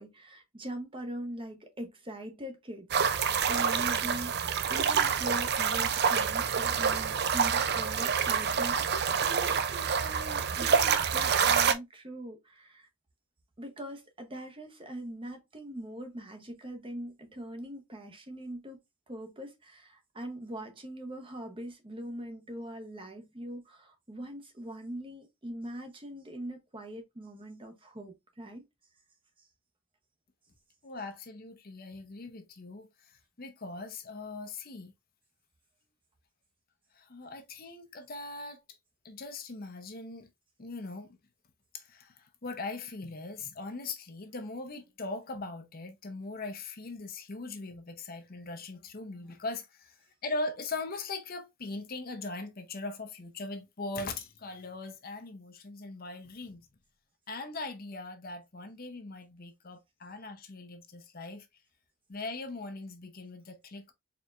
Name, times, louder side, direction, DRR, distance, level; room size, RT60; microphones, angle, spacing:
voice 1, 0.0-12.9 13.6-18.8 19.1-28.6 29.4-29.5, right 1 dB, 25° right, 0.8 m, -42 dB
sound 1, 2.9-11.7, right 6 dB, 50° right, 0.4 m, -27 dB
voice 2, 30.8-34.9 36.9-38.8 39.0-40.3 40.6-41.2 41.7-49.9 50.2-56.7 57.3-61.5 62.1-63.9, left 3 dB, 45° left, 0.7 m, -40 dB
4.4 x 3.5 x 2.4 m
head